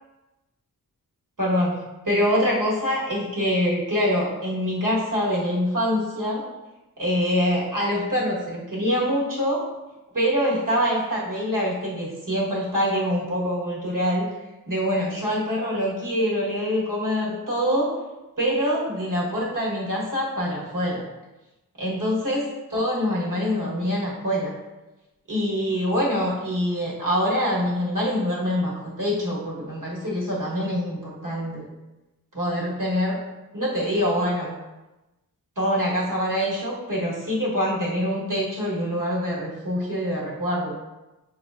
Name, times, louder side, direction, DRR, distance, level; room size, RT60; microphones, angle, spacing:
voice 1, 1.4-1.8 2.0-6.4 7.0-9.6 10.1-14.3 14.7-17.9 18.4-21.0 21.8-22.4 22.7-24.5 25.3-31.7 32.3-33.2 33.5-34.6 35.6-40.7, equal, 60° right, -6 dB, 1.3 m, -25 dB
6.3 x 2.1 x 2.4 m, 1.1 s
wide cardioid pair, 50°, 35 cm